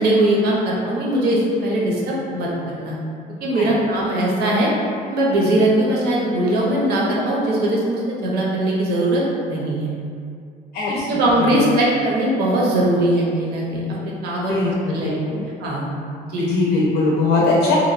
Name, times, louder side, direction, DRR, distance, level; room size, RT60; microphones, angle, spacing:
voice 1, 0.0-3.0 3.4-4.7 5.1-10.0 10.9-15.2 15.6-15.9 16.2-16.5, right 1 dB, 70° right, -4 dB, 0.7 m, -20 dB
voice 2, 10.7-11.6 14.5-15.5 16.3-17.8, left 3 dB, 80° left, -4 dB, 0.4 m, -21 dB
2.9 x 2.2 x 2.5 m, 2.3 s
cardioid pair, 110°, 17 cm